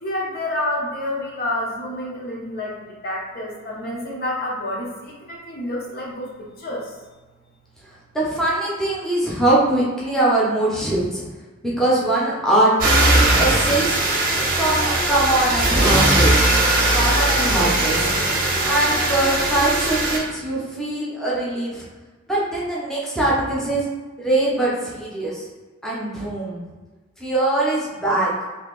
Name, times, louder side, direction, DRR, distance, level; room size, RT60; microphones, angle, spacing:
voice 1, 0.0-6.3 6.6-7.0, left 1 dB, 45° left, -3 dB, 0.6 m, -28 dB
voice 2, 8.1-11.2 11.6-14.0 14.6-16.5 16.9-18.1 18.6-21.8 22.3-23.8 24.2-25.4 25.8-26.6 27.2-28.3, right 1 dB, ahead, -6 dB, 0.6 m, -22 dB
sound 1, 12.8-20.2, right 1 dB, 40° right, 0.7 m, -19 dB
2.7 x 2.7 x 3.8 m, 1.3 s
head